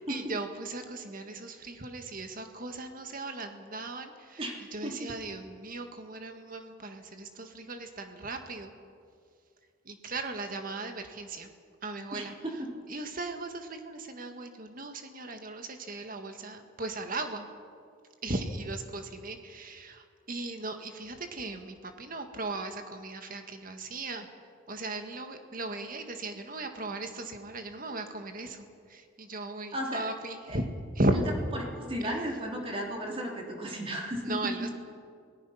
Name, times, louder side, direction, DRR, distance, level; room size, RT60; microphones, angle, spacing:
voice 1, 0.1-4.4 4.7-8.7 9.9-11.5 11.8-12.3 12.9-17.5 18.2-24.3 24.7-30.7 31.0-31.2 32.0-32.1 34.2-34.7, right 2 dB, 45° right, 6 dB, 1.8 m, -37 dB
voice 2, 12.1-12.7 29.7-30.0 30.5-30.6 31.5-34.7, equal, 30° right, 0 dB, 3.1 m, -34 dB
28.0 x 18.0 x 5.7 m, 2.3 s
head